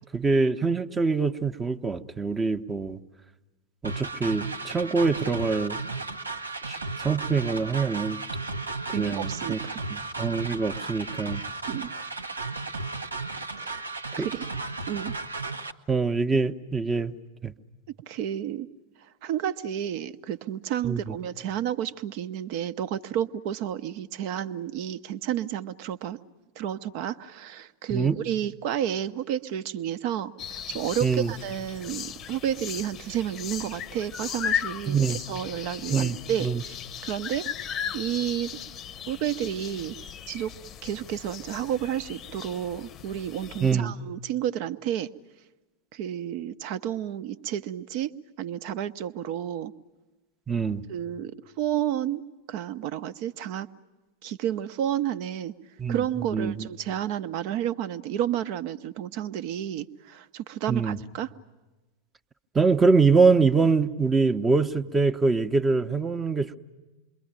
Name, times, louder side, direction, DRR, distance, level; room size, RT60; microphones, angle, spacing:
voice 1, 0.1-3.0 3.8-5.8 6.7-8.2 9.0-9.6 9.9-11.4 14.2-14.3 15.9-17.2 17.4-17.5 20.8-21.1 27.9-28.2 31.0-31.3 34.9-35.2 35.9-36.6 43.6-43.9 50.5-50.8 55.8-56.0 56.3-56.7 60.7-61.0 62.5-66.6, right 4 dB, 15° right, 11 dB, 0.9 m, -24 dB
sound 1, 3.8-15.7, right 3 dB, 80° right, 0.9 m, -34 dB
voice 2, 8.9-9.8 11.7-11.9 13.6-13.8 14.2-14.5 14.9-15.1 18.1-18.7 19.2-26.2 26.6-38.6 39.1-40.0 40.3-40.5 40.8-45.1 45.9-48.1 48.4-49.7 50.9-53.7 54.2-55.5 55.9-61.3, right 10 dB, 45° right, 14 dB, 0.8 m, -31 dB
sound 2, 30.4-43.7, left 8 dB, 30° left, 0.8 m, -37 dB
27.5 x 23.0 x 8.9 m, 1.1 s
figure-of-eight pair, 90°, 0 cm